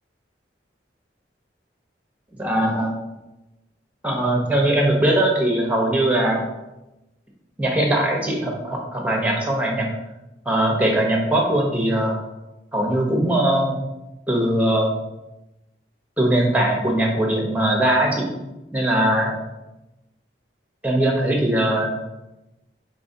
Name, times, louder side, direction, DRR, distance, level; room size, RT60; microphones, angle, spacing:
voice 1, 2.4-2.9 4.0-6.4 7.6-9.9 10.5-12.2 12.7-13.8 14.3-14.9 16.2-18.3 18.7-19.3 20.8-21.9, right 1 dB, 10° right, 0 dB, 0.7 m, -20 dB
4.7 x 3.8 x 2.7 m, 0.98 s
head